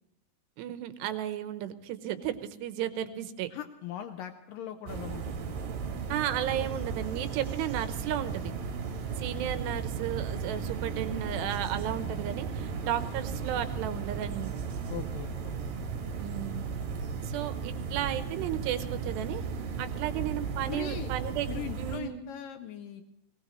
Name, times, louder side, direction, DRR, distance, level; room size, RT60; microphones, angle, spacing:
voice 1, 0.6-3.5 6.1-8.5 9.2-14.6 16.2-16.6 17.2-19.4 19.8-22.2, right 11 dB, 75° right, 10 dB, 3.0 m, -34 dB
voice 2, 3.5-5.5 14.9-15.5 20.7-21.1 21.5-23.0, left 10 dB, 85° left, 7 dB, 1.9 m, -40 dB
sound 1, 4.9-22.0, right 5 dB, 60° right, 2.8 m, -35 dB
19.5 x 19.5 x 3.1 m, 0.86 s
omnidirectional pair, 5.1 m